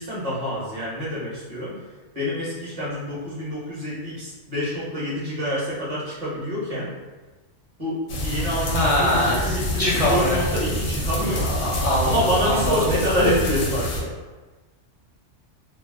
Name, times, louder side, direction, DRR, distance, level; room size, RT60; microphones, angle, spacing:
voice 1, 0.0-1.8 2.1-6.9 7.8-11.5 12.0-14.1, equal, 30° right, -8 dB, 1.0 m, -27 dB
sound 1, 8.1-14.0, equal, 80° left, 1.0 m, -27 dB
voice 2, 8.7-10.4 11.3-12.7, left 1 dB, 50° left, -7 dB, 0.4 m, -23 dB
2.5 x 2.2 x 3.4 m, 1.3 s
omnidirectional pair, 1.3 m